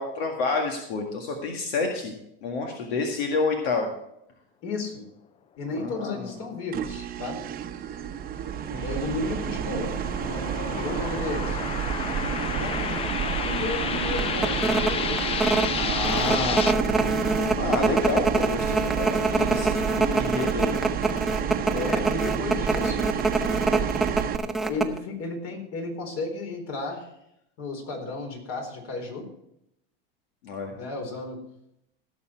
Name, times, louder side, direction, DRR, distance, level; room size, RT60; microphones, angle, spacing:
voice 1, 0.0-2.1 2.4-4.0 5.8-6.3 8.7-9.2 15.8-16.7 17.0-20.9 30.4-30.7, left 3 dB, 85° left, 2 dB, 2.0 m, -29 dB
voice 2, 4.6-5.0 5.6-7.4 8.8-11.6 12.5-13.1 13.4-15.4 16.3-16.4 21.7-23.1 24.7-27.0 27.6-29.3 30.8-31.4, left 3 dB, 55° left, 3 dB, 4.3 m, -33 dB
sound 1, 6.7-24.4, right 9 dB, 30° right, 0.9 m, -30 dB
sound 2, 8.4-16.7, left 8 dB, 20° left, 0.3 m, -32 dB
sound 3, 9.9-10.1 10.7-10.8 11.1-12.0 12.4-12.5 12.8-13.1 13.5-13.6 14.2-25.0, right 3 dB, ahead, 0.8 m, -25 dB
16.5 x 7.1 x 4.6 m, 0.78 s
supercardioid pair, 120°, 30 cm